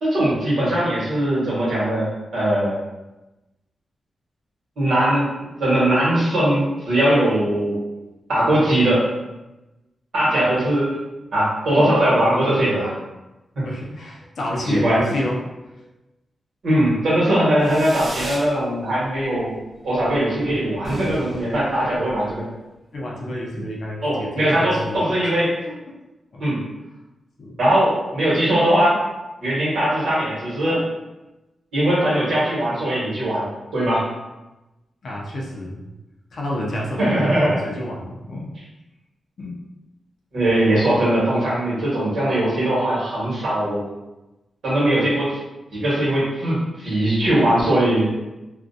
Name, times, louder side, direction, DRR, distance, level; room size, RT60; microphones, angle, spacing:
voice 1, 0.0-2.8 4.8-7.8 8.3-9.0 10.1-10.9 11.3-12.9 13.5-13.6 14.7-15.0 16.6-19.6 19.8-22.4 24.0-25.5 26.4-26.6 27.6-29.0 29.4-30.8 31.7-33.4 33.7-34.0 37.0-37.6 40.3-43.8 44.6-45.4 45.7-48.1, right 1 dB, 65° right, -8 dB, 1.2 m, -20 dB
voice 2, 13.6-15.5 22.9-25.3 25.7-26.0 26.3-26.5 27.4-27.6 35.0-35.9 36.3-38.5 39.4-39.6, left 1 dB, 55° left, -3 dB, 0.5 m, -29 dB
Fireworks, 17.6-18.5 18.9-19.4 19.7-19.8 20.0-20.2 20.4-20.5 20.7-22.4, right 1 dB, 50° right, 0.7 m, -35 dB
2.4 x 2.2 x 2.5 m, 1.0 s
wide cardioid pair, 170°, 0 cm